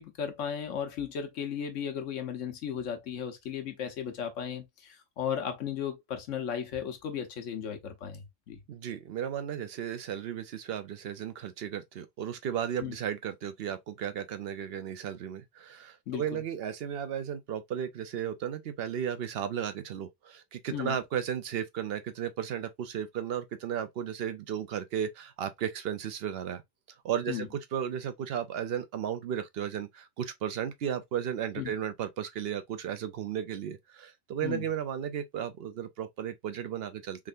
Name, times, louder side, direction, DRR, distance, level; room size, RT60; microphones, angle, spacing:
voice 1, 0.0-8.6 12.8-13.0 16.1-16.4 20.7-21.0 27.3-27.5 31.6-31.7 34.4-34.7, left 8 dB, 70° left, 1.2 m, -35 dB
voice 2, 8.7-26.6 27.0-37.3, right 9 dB, 60° right, 0.7 m, -34 dB
3.6 x 3.3 x 2.4 m
omnidirectional pair, 1.3 m